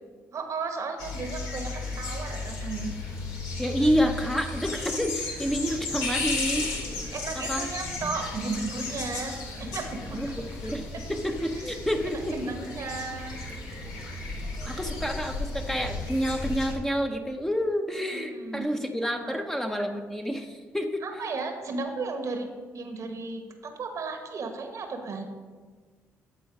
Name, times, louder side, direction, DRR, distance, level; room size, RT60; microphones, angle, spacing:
voice 1, 0.3-2.9 7.1-9.3 9.6-10.5 11.6-11.7 12.1-13.4 18.1-18.7 19.0-19.4 21.0-22.5 22.7-25.3, right 4 dB, 55° right, 5 dB, 1.1 m, -34 dB
sound 1, 1.0-16.7, left 2 dB, 90° left, 1.4 m, -34 dB
voice 2, 3.6-6.7 7.4-7.7 10.2-10.3 10.6-12.3 14.7-21.0, equal, 5° left, 4 dB, 0.8 m, -28 dB
10.5 x 3.9 x 5.1 m, 1.5 s
supercardioid pair, 70°, 6 cm